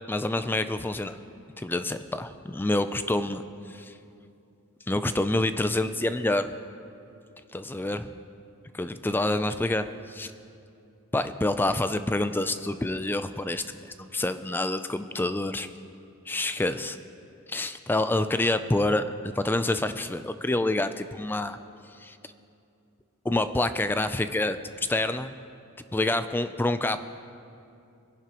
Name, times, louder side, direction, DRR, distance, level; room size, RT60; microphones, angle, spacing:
voice 1, 0.1-1.2 1.6-3.4 3.7-3.9 4.9-6.5 7.5-8.0 8.7-10.3 11.1-15.7 16.3-17.0 17.5-19.0 19.4-21.6 22.0-22.2 23.3-25.3 25.9-27.0, left 2 dB, 10° left, 10 dB, 0.3 m, -27 dB
22.5 x 11.0 x 3.0 m, 2.6 s
head